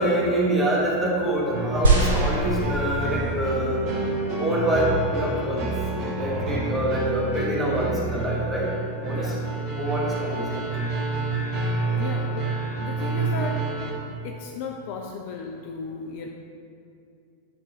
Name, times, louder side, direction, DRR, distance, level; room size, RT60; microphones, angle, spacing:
voice 1, 0.0-3.9 4.4-5.7 6.0-8.7 9.0-9.3 9.7-10.7, right 1 dB, 15° right, -4 dB, 1.2 m, -25 dB
sound 1, 1.5-13.9, right 3 dB, 40° right, 1.0 m, -28 dB
sound 2, 1.8-3.3 4.1-4.2, right 2 dB, 65° right, 1.5 m, -23 dB
voice 2, 9.1-9.5 11.9-13.6 14.2-16.3, left 5 dB, 50° left, 2 dB, 0.5 m, -35 dB
9.7 x 3.7 x 4.4 m, 2.5 s
figure-of-eight pair, 90°, 0 cm